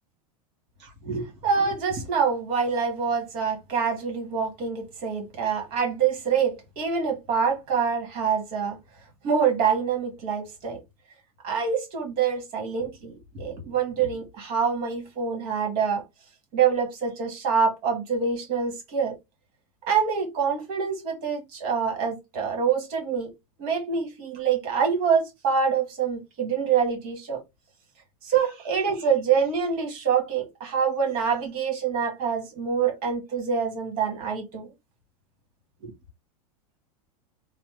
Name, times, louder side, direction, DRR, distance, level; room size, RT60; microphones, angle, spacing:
voice 1, 0.8-8.8 9.2-10.8 11.4-16.0 16.5-19.2 19.9-23.3 23.6-27.4 28.2-34.7 35.8-35.9, right 6 dB, 50° right, 1.5 m, -26 dB
3.2 x 2.0 x 3.1 m
supercardioid pair, 125°, 19 cm